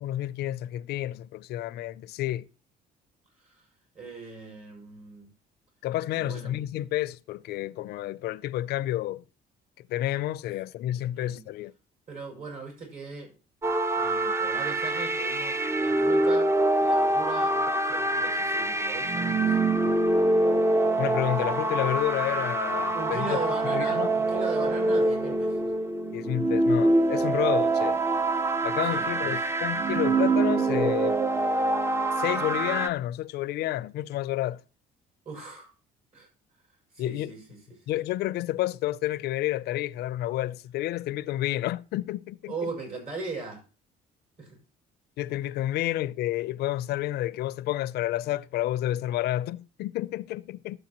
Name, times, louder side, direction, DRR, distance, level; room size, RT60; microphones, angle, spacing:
voice 1, 0.0-2.5 5.8-9.2 9.9-11.7 21.0-23.4 23.6-24.1 26.1-28.0 28.6-31.2 32.2-34.6 37.0-37.3 37.9-42.7 45.2-50.8, left 14 dB, 75° left, 0.5 m, -30 dB
voice 2, 3.9-5.3 6.1-6.6 11.1-11.4 12.1-13.3 13.9-16.5 16.8-19.7 22.9-25.7 28.9-29.4 35.2-35.7 36.1-36.3 36.9-37.8 42.5-43.6 44.4-44.6, right 3 dB, 55° right, 6.2 m, -39 dB
sound 1, 13.6-32.9, right 2 dB, 15° right, 0.5 m, -25 dB
13.0 x 7.9 x 2.9 m
cardioid pair, 110°, 17 cm